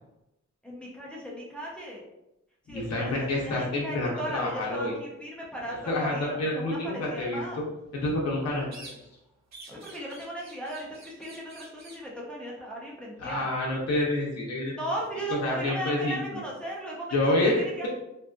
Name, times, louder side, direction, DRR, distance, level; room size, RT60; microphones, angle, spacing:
voice 1, 0.6-2.0 2.7-7.6 9.7-13.5 14.7-17.9, right 1 dB, 5° left, -5 dB, 0.5 m, -37 dB
voice 2, 2.7-4.9 5.9-7.4 7.9-8.7 13.2-14.8 15.3-16.4 17.1-17.9, left 1 dB, 60° left, -3 dB, 0.6 m, -28 dB
sound 1, 8.7-9.2 9.5-12.1, right 2 dB, 65° right, 0.6 m, -49 dB
2.6 x 2.4 x 2.2 m, 0.90 s
wide cardioid pair, 165°, 29 cm